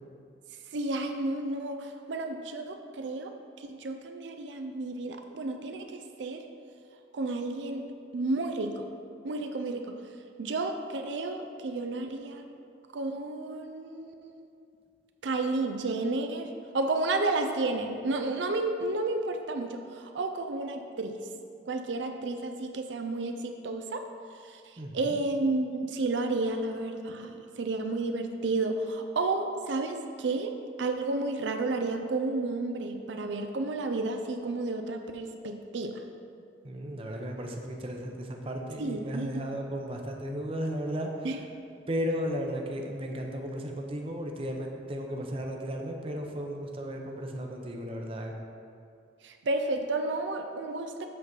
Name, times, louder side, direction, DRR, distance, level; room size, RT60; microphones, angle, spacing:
voice 1, 0.7-6.4 7.1-7.8 8.1-8.9 9.2-9.9 10.4-12.4 12.9-14.4 15.2-21.2 21.7-24.0 24.5-30.5 30.8-36.0 38.8-39.5 41.2-41.4 49.2-51.1, right 2 dB, 90° right, 5 dB, 0.5 m, -31 dB
voice 2, 24.8-25.2 36.6-41.4 41.9-48.3, equal, 30° right, 2 dB, 0.7 m, -35 dB
7.6 x 4.0 x 6.0 m, 2.4 s
head